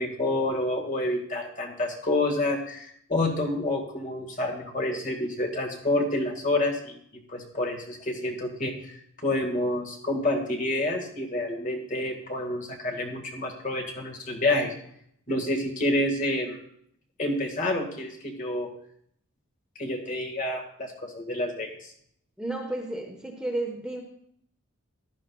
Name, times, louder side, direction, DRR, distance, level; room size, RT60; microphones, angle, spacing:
voice 1, 0.0-8.9 9.2-14.7 15.3-16.6 17.2-18.7 19.8-21.9, left 1 dB, 35° left, 1 dB, 1.7 m, -28 dB
voice 2, 22.4-24.0, right 2 dB, 5° right, 0 dB, 1.2 m, -32 dB
15.0 x 11.5 x 2.3 m, 0.67 s
head